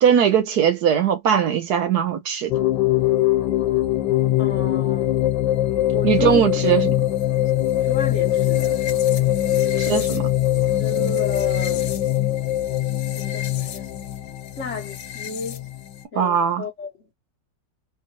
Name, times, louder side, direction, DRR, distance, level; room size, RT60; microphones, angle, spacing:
voice 1, 0.0-2.5 6.0-6.9 9.9-10.2 16.2-16.6, right 8 dB, 65° right, 1.1 m, -19 dB
sound 1, 2.5-16.0, left 13 dB, 80° left, 1.4 m, -22 dB
voice 2, 4.4-5.1 5.9-6.5 7.8-8.8 9.5-10.3 10.8-11.9 13.2-14.0 14.6-15.7 16.1-17.1, left 4 dB, 50° left, 0.9 m, -33 dB
3.7 x 2.1 x 2.8 m
omnidirectional pair, 2.0 m